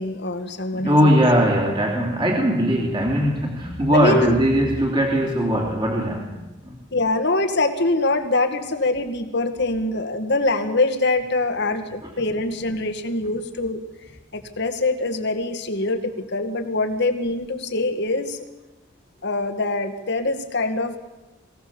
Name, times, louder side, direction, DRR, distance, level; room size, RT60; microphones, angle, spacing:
voice 1, 0.0-1.1 3.9-4.3 6.9-13.8 14.3-18.4 19.2-21.0, left 2 dB, 60° left, 7 dB, 2.1 m, -24 dB
voice 2, 0.7-6.8, equal, 25° right, -1 dB, 3.1 m, -20 dB
23.5 x 17.0 x 7.1 m, 1.1 s
head